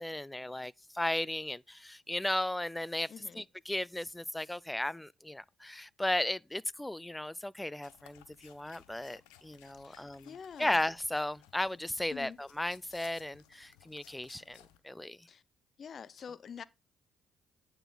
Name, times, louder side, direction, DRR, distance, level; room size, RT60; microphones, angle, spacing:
voice 1, 0.0-3.1 3.4-10.3 10.6-15.3, left 1 dB, 10° left, 0.4 m, -35 dB
voice 2, 3.1-3.5 9.8-10.8 12.1-12.4 15.3-15.4 15.8-16.6, left 7 dB, 50° left, 0.7 m, -46 dB
sound 1, 7.8-14.8, left 12 dB, 90° left, 0.9 m, -60 dB
9.1 x 6.1 x 4.0 m
supercardioid pair, 60°, 0 cm